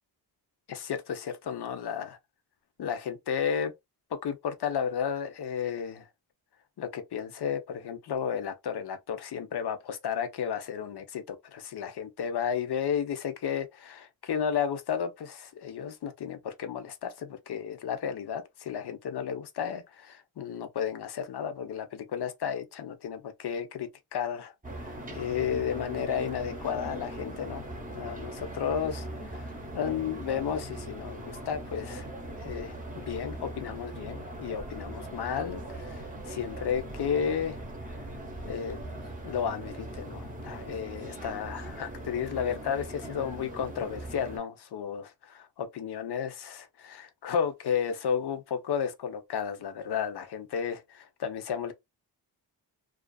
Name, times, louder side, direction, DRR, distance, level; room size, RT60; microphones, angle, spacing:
voice 1, 0.7-2.2 2.8-3.7 4.2-6.1 6.8-24.5 24.8-27.6 27.9-32.1 32.4-37.6 38.4-38.9 39.2-51.7, left 7 dB, 65° left, 0.6 m, -33 dB
sound 1, 24.6-44.4, right 1 dB, 20° right, 0.7 m, -40 dB
2.4 x 2.4 x 2.3 m
wide cardioid pair, 125°, 43 cm